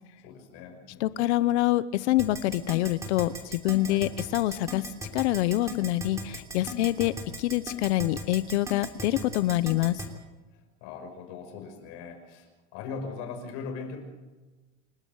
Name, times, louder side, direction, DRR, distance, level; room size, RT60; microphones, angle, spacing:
voice 1, 0.2-1.2 3.8-4.1 6.6-6.9 10.5-14.0, left 5 dB, 45° left, 4 dB, 6.0 m, -40 dB
voice 2, 1.0-10.0, left 15 dB, 75° left, 16 dB, 0.9 m, -26 dB
Keyboard (musical), 2.2-10.1, right 1 dB, 10° right, 3.1 m, -37 dB
29.0 x 12.0 x 8.1 m, 1.2 s
supercardioid pair, 175°, 35 cm